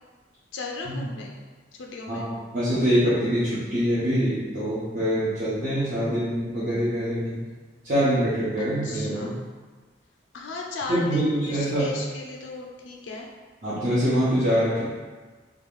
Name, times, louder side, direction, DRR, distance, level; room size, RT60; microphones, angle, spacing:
voice 1, 0.5-1.4 1.7-2.3 8.6-9.4 10.3-13.3, left 3 dB, 70° left, 0 dB, 0.4 m, -36 dB
voice 2, 2.1-7.4 7.8-9.4 10.9-11.9 13.6-14.8, equal, 45° right, -13 dB, 0.8 m, -24 dB
2.9 x 2.4 x 3.5 m, 1.4 s
head